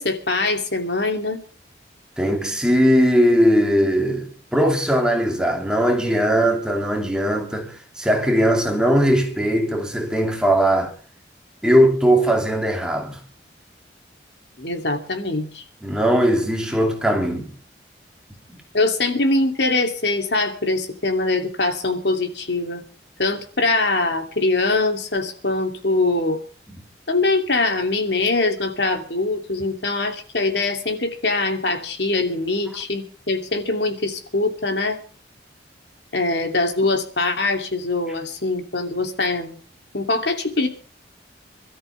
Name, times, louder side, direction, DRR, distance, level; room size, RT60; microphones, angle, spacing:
voice 1, 0.0-1.4 14.6-15.6 18.7-22.8 23.2-26.4 27.1-35.0 36.1-39.6 39.9-40.7, left 2 dB, 75° left, 2.8 m, -23 dB
voice 2, 2.2-10.9 11.6-13.2 15.8-17.5, equal, 5° right, 2.6 m, -19 dB
26.5 x 13.5 x 3.4 m
head